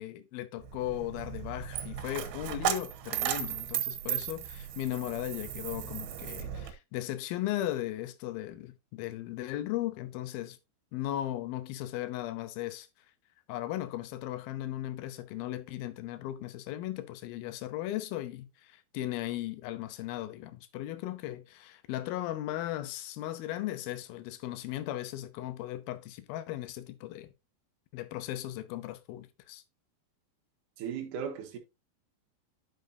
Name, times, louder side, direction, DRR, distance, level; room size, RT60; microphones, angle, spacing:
voice 1, 0.0-10.6 10.9-12.9 13.5-27.3 27.9-29.6, left 14 dB, 75° left, 2.3 m, -37 dB
Coin (dropping), 0.6-6.7, right 10 dB, 80° right, 3.5 m, -35 dB
voice 2, 30.8-31.6, right 7 dB, 65° right, 2.3 m, -36 dB
10.5 x 5.9 x 2.7 m
omnidirectional pair, 5.0 m